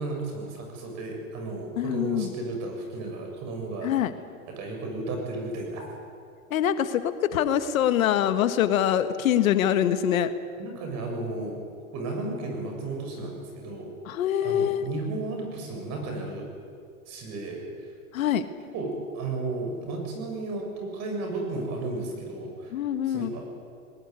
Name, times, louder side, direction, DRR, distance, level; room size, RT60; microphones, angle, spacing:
voice 1, 0.0-3.9 4.5-5.9 10.6-11.6 11.9-13.9 14.4-16.5 17.1-17.6 18.7-22.8 23.0-23.5, right 2 dB, 40° right, 2 dB, 7.2 m, -33 dB
voice 2, 1.8-2.3 3.8-4.1 6.5-10.3 14.0-14.9 18.1-18.4 22.7-23.3, left 10 dB, 70° left, 11 dB, 1.5 m, -24 dB
20.5 x 18.0 x 9.7 m, 2.3 s
hypercardioid pair, 125°, 42 cm